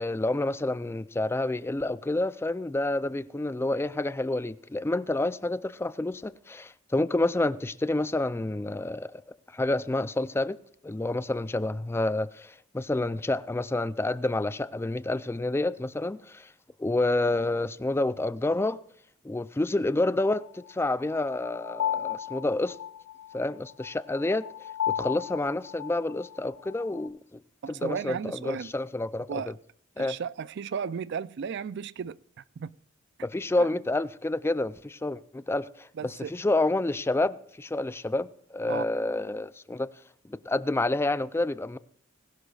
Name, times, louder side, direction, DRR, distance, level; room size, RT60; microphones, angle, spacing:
voice 1, 0.0-9.2 9.5-10.6 10.8-16.5 16.8-18.8 19.2-22.8 23.3-24.4 25.0-27.4 27.7-29.4 30.0-30.1 33.2-39.9 40.3-41.8, left 2 dB, 10° left, 0.3 m, -29 dB
sound 1, 20.3-27.1, left 10 dB, 80° left, 1.3 m, -35 dB
voice 2, 27.6-28.7 29.3-29.6 30.0-32.7 33.6-33.7 36.0-36.3 38.7-38.8, right 6 dB, 55° right, 0.4 m, -35 dB
21.0 x 11.5 x 2.4 m
head